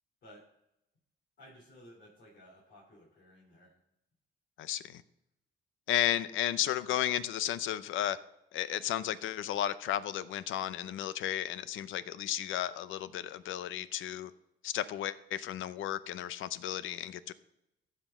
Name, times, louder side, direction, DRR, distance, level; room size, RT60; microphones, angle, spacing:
voice 1, 1.4-3.7, equal, 60° left, -5 dB, 3.4 m, -56 dB
voice 2, 4.6-5.0 5.9-8.2 8.5-14.3 14.6-17.3, left 11 dB, 80° left, 16 dB, 0.6 m, -33 dB
14.5 x 5.1 x 5.4 m, 0.86 s
cardioid pair, 90°, 20 cm